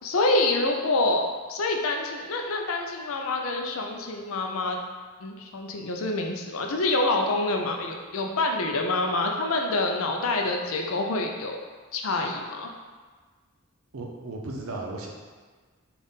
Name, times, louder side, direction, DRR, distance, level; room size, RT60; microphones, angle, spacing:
voice 1, 0.0-4.8 5.2-11.6 11.9-12.7, left 2 dB, 65° left, 2 dB, 0.5 m, -26 dB
voice 2, 13.9-15.1, right 2 dB, 70° right, 0 dB, 0.6 m, -35 dB
4.0 x 2.5 x 3.5 m, 1.5 s
head